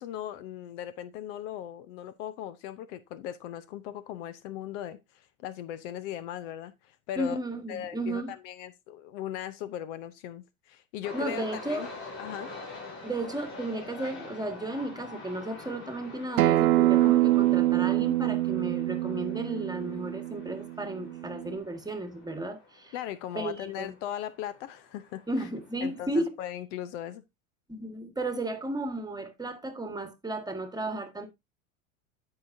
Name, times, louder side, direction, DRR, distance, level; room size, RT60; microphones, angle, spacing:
voice 1, 0.0-7.4 7.7-11.9 12.2-12.5 22.9-25.5 25.8-27.2, left 11 dB, 60° left, 0.8 m, -38 dB
voice 2, 7.2-8.3 11.1-11.9 13.0-22.9 23.3-23.9 25.3-26.3 27.7-31.3, right 2 dB, 10° right, 1.6 m, -34 dB
sound 1, 11.0-26.0, left 3 dB, 30° left, 6.3 m, -46 dB
Acoustic guitar, 16.4-21.6, right 15 dB, 85° right, 0.6 m, -25 dB
13.0 x 4.9 x 2.7 m
hypercardioid pair, 90°, 41 cm